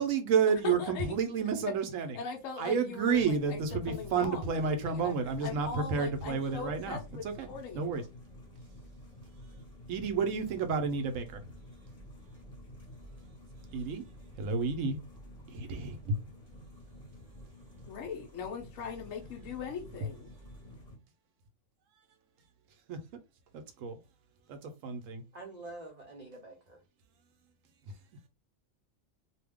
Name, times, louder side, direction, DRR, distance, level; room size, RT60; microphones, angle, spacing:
voice 1, 0.0-2.2 2.6-7.0 7.2-7.5 7.7-8.0 9.9-11.4 13.7-14.0 14.4-15.0 15.5-16.2 22.9-23.0 23.5-24.0 24.5-25.2, right 5 dB, 85° right, 1.1 m, -30 dB
voice 2, 0.6-1.1 2.1-8.1 17.9-20.3, left 5 dB, 80° left, 1.0 m, -40 dB
sound 1, 3.1-21.0, equal, 35° left, 1.1 m, -51 dB
voice 3, 25.3-26.8, right 2 dB, 40° right, 0.7 m, -46 dB
2.7 x 2.2 x 3.5 m
omnidirectional pair, 1.3 m